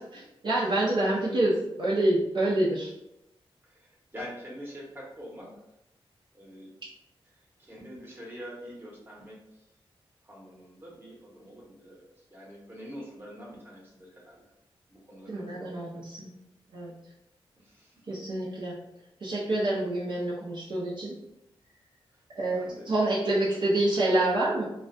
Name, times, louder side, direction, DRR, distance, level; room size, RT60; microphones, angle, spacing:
voice 1, 0.1-2.9 15.3-16.3 16.7-16.9 18.1-18.7 19.2-21.1 22.3-24.7, right 1 dB, 55° right, -7 dB, 0.5 m, -27 dB
voice 2, 3.6-5.5 6.3-6.7 7.3-9.7 10.2-14.4 14.9-16.0 17.6-18.2 22.1-22.9 23.4-23.6, equal, 20° right, -4 dB, 0.9 m, -46 dB
2.3 x 2.1 x 2.5 m, 0.87 s
wide cardioid pair, 90°, 10 cm